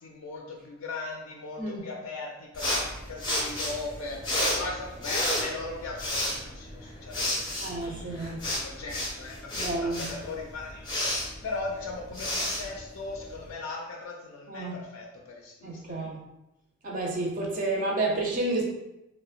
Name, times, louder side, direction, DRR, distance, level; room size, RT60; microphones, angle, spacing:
voice 1, 0.0-16.1, left 3 dB, 75° left, -1 dB, 0.3 m, -39 dB
sound 1, 2.5-13.5, left 1 dB, 20° left, 0.5 m, -32 dB
voice 2, 7.6-8.5 9.5-10.0 14.5-14.8 15.6-16.2 16.8-18.6, right 2 dB, 40° right, -1 dB, 0.4 m, -30 dB
2.9 x 2.0 x 2.4 m, 0.90 s
head